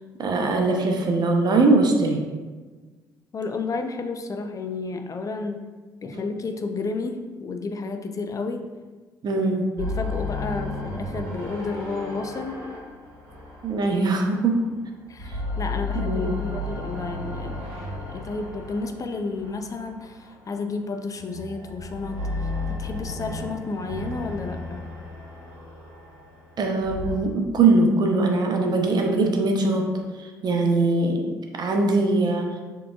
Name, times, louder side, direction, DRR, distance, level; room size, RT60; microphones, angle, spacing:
voice 1, 0.2-2.2 9.2-9.6 13.6-14.6 15.9-16.3 26.6-29.9 30.4-32.5, right 3 dB, 45° right, 3 dB, 0.7 m, -21 dB
voice 2, 3.3-5.7 6.0-8.6 9.3-9.4 9.8-12.6 15.1-17.7 18.1-22.5 22.8-24.8, left 3 dB, 35° left, 6 dB, 0.4 m, -31 dB
sound 1, 9.8-14.7 15.1-20.4 21.2-27.2, left 2 dB, 70° right, 1.0 m, -33 dB
6.8 x 3.0 x 2.3 m, 1.3 s
figure-of-eight pair, 45°, 10 cm